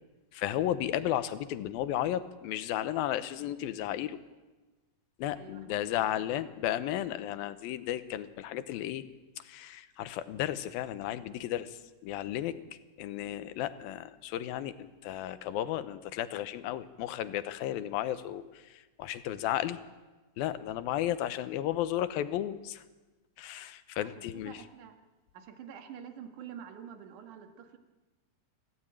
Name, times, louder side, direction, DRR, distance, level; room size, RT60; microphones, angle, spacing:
voice 1, 0.3-4.2 5.2-9.0 9.4-12.6 13.0-19.8 20.4-22.8 23.4-24.6, left 12 dB, 80° left, 12 dB, 2.7 m, -34 dB
voice 2, 5.3-6.3 24.0-25.0 25.3-27.8, right 8 dB, 60° right, 6 dB, 3.0 m, -48 dB
25.5 x 16.0 x 8.9 m, 1.2 s
omnidirectional pair, 4.3 m